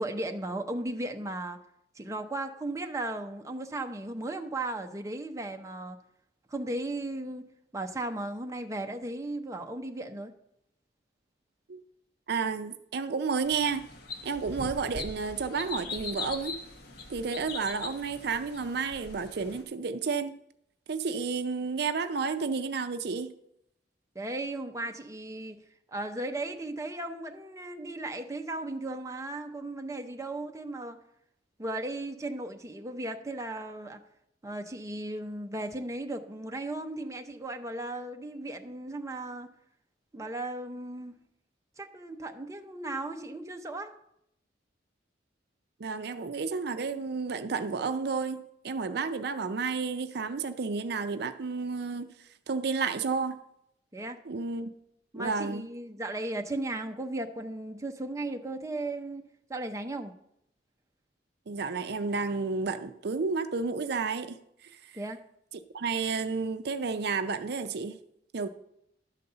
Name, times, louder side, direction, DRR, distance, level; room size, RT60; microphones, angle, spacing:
voice 1, 0.0-1.6 1.9-6.0 6.5-10.3 24.1-25.6 25.9-31.0 31.6-34.0 34.4-39.5 40.1-41.1 41.8-44.0 53.9-54.2 55.1-59.2 59.5-60.1 64.9-65.2, right 2 dB, 15° right, 0.7 m, -36 dB
voice 2, 12.3-13.8 14.2-16.5 17.1-20.3 20.9-23.3 45.8-53.4 54.3-54.7 55.2-55.7 61.5-64.9 65.7-68.0 68.3-68.5, right 4 dB, 60° right, 0.5 m, -31 dB
sound 1, 13.4-19.6, left 3 dB, 60° left, 1.3 m, -41 dB
11.5 x 4.2 x 6.6 m
head